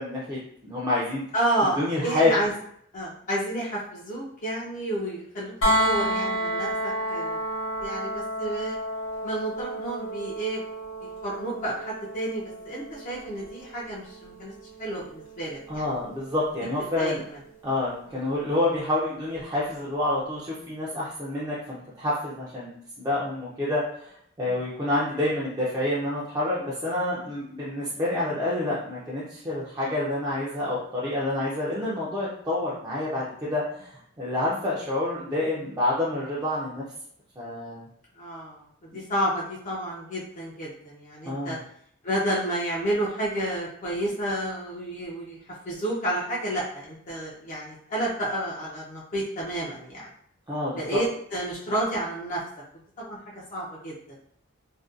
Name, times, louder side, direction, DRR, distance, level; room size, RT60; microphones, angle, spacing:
voice 1, 0.0-1.2 1.8-2.3 15.7-17.2 17.6-36.8 37.4-37.9 38.9-39.0 41.2-41.6 50.5-51.0, left 1 dB, 20° right, -8 dB, 0.4 m, -28 dB
voice 2, 1.3-2.5 2.9-7.4 7.8-8.8 9.2-10.6 11.0-14.5 14.8-15.8 17.0-17.2 18.1-18.2 24.5-24.6 34.5-34.6 38.2-38.6 38.9-41.6 42.0-45.4 45.7-50.1 50.8-52.4 53.0-53.9, right 1 dB, 40° left, -5 dB, 0.4 m, -30 dB
sound 1, 5.6-17.4 19.4-19.5, right 1 dB, 75° left, 0.8 m, -31 dB
2.6 x 2.2 x 2.4 m, 0.66 s
head